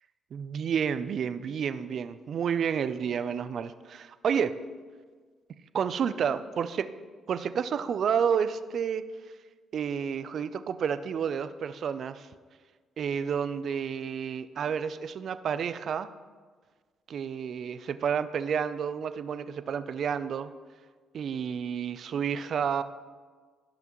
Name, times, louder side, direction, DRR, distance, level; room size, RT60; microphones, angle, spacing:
voice 1, 0.3-4.6 5.7-6.9 7.3-9.1 9.7-12.3 13.0-16.1 17.1-20.5 21.1-22.8, right 7 dB, 60° right, 12 dB, 0.4 m, -30 dB
16.5 x 5.9 x 3.0 m, 1.5 s
cardioid pair, 90°, 0 cm